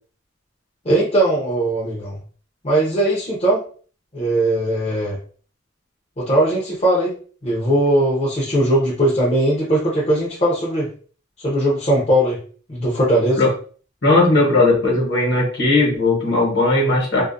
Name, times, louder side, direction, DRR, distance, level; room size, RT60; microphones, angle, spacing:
voice 1, 0.8-2.2 2.6-3.6 4.1-5.2 6.2-7.1 7.4-10.9 11.4-12.4 12.7-13.5, right 1 dB, 30° left, -6 dB, 0.6 m, -19 dB
voice 2, 14.0-17.2, left 2 dB, 55° left, -2 dB, 1.0 m, -17 dB
2.3 x 2.1 x 2.5 m, 0.41 s
head